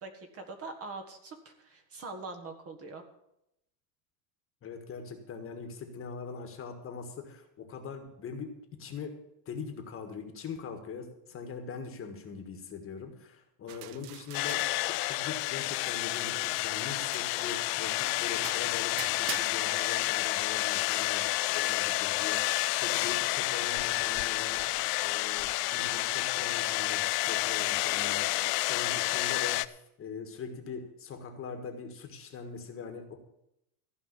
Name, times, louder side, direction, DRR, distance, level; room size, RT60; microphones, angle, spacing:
voice 1, 0.0-3.0, right 3 dB, 30° right, 6 dB, 1.6 m, -43 dB
voice 2, 4.6-9.2 9.4-28.4 28.7-33.2, left 5 dB, 30° left, 5 dB, 1.6 m, -42 dB
sound 1, 13.7-15.6 15.9-19.5, right 13 dB, 50° right, 0.7 m, -45 dB
sound 2, 14.3-29.7, left 20 dB, 85° left, 0.7 m, -30 dB
15.0 x 5.4 x 9.8 m, 0.81 s
cardioid pair, 155°, 46 cm